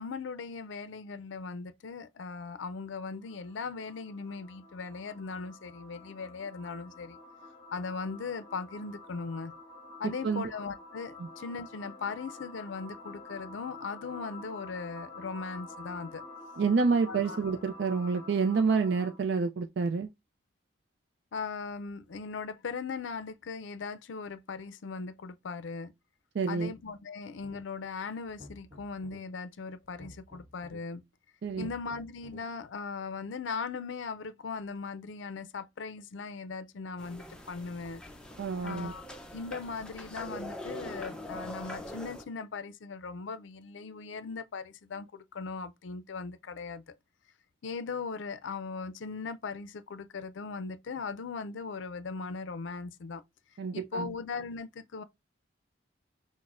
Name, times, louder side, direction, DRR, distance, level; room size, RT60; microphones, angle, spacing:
voice 1, 0.0-7.2 7.7-9.5 10.0-16.2 17.1-17.4 21.3-25.9 26.5-31.0 31.6-38.0 38.6-39.0 39.3-46.8 47.6-53.2 53.7-55.0, left 4 dB, 75° left, 0.4 m, -39 dB
sound 1, 2.7-19.3, left 2 dB, 20° left, 1.0 m, -49 dB
voice 2, 16.6-20.1 26.3-26.7 31.4-31.7 38.4-38.9 53.6-54.1, right 5 dB, 60° right, 0.4 m, -28 dB
sound 2, 27.4-27.9 28.2-29.2 29.8-30.8 31.4-32.4, left 1 dB, 30° right, 1.3 m, -52 dB
sound 3, 37.0-42.2, left 1 dB, 5° left, 0.5 m, -43 dB
5.9 x 2.1 x 2.5 m
head